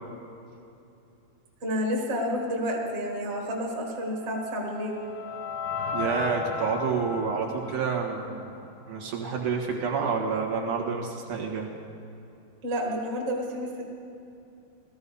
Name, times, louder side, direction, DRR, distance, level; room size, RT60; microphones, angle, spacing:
voice 1, 1.6-5.0 12.6-13.8, equal, 90° right, -1 dB, 0.6 m, -30 dB
sound 1, 3.8-9.0, left 4 dB, 50° left, 2.7 m, -36 dB
voice 2, 5.9-8.6 8.9-11.7, right 5 dB, 60° right, -1 dB, 2.5 m, -29 dB
18.0 x 14.0 x 5.5 m, 2.7 s
omnidirectional pair, 5.0 m